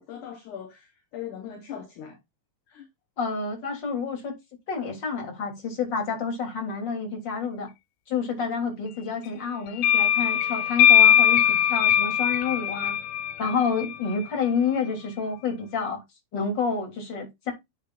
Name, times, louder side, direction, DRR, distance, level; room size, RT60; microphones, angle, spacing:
voice 1, 0.0-2.2 2.7-2.9, left 9 dB, 60° left, 2.6 m, -40 dB
voice 2, 3.2-4.3 4.7-7.7 8.1-11.4 11.7-13.0 13.4-16.0 16.3-17.5, left 5 dB, 30° left, 3.7 m, -29 dB
sound 1, 9.8-14.3, left 10 dB, 80° left, 1.9 m, -20 dB
9.3 x 8.5 x 2.6 m
omnidirectional pair, 4.2 m